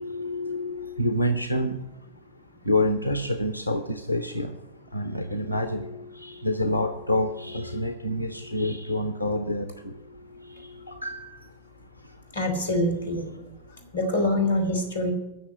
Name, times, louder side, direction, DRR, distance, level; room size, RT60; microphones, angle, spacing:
voice 1, 0.0-1.8 2.7-4.5 4.9-9.6 10.9-11.4, left 1 dB, 90° right, 8 dB, 0.8 m, -27 dB
voice 2, 12.3-13.2 13.9-15.1, left 1 dB, 70° left, 5 dB, 3.4 m, -25 dB
14.0 x 6.5 x 8.7 m, 0.97 s
figure-of-eight pair, 90°, 0 cm